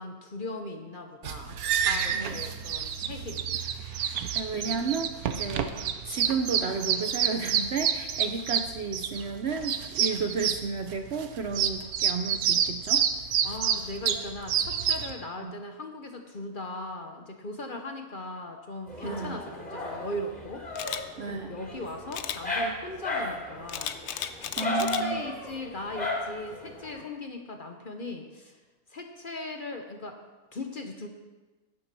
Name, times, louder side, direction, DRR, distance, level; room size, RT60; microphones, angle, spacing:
voice 1, 0.0-1.6 1.8-3.5 5.3-5.5 9.1-9.7 13.4-20.6 21.3-23.9 24.6-28.6 28.9-30.2 30.5-31.1, left 1 dB, 40° left, 4 dB, 1.0 m, -39 dB
sound 1, 1.2-15.1, right 8 dB, 75° right, 1.2 m, -28 dB
voice 2, 4.3-5.7 6.0-13.0 15.4-15.5 19.0-19.4 21.2-21.5 24.6-25.3, right 4 dB, 55° right, 6 dB, 0.8 m, -32 dB
Dog, 18.9-27.0, left 1 dB, 5° left, 3.1 m, -35 dB
Camera, 20.8-21.0 22.1-22.4 23.7-25.0 25.5-25.8, left 9 dB, 60° left, 0.8 m, -34 dB
10.5 x 9.8 x 6.0 m, 1.2 s
omnidirectional pair, 1.6 m